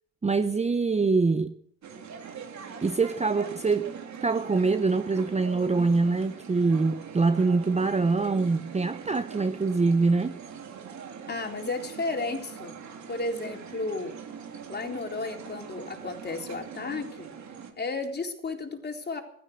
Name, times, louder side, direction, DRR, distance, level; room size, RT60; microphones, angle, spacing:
voice 1, 0.2-1.5 2.8-10.4, right 4 dB, 20° right, 1.0 m, -24 dB
sound 1, 1.8-17.7, right 6 dB, 50° right, 3.4 m, -42 dB
voice 2, 11.3-12.8 13.1-14.1 14.7-17.3 17.8-19.2, left 3 dB, 25° left, 3.9 m, -33 dB
16.0 x 13.5 x 6.5 m
hypercardioid pair, 70°, 36 cm